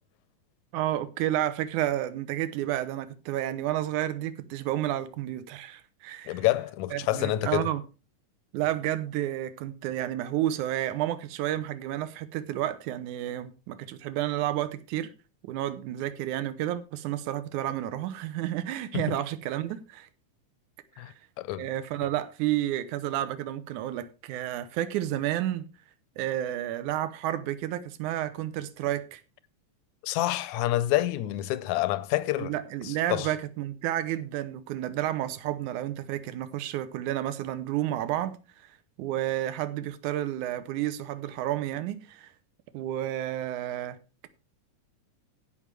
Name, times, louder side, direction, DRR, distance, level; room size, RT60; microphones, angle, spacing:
voice 1, 0.7-6.4 6.9-7.8 8.5-15.1 15.4-20.1 21.0-21.1 21.6-25.7 26.2-29.2 32.4-38.4 39.0-42.3 42.7-44.0, right 13 dB, 75° right, 2.3 m, -31 dB
voice 2, 6.3-7.7 18.9-19.1 21.0-21.7 30.0-32.5 32.8-33.3, left 15 dB, 75° left, 1.9 m, -28 dB
16.0 x 5.6 x 4.7 m
omnidirectional pair, 3.7 m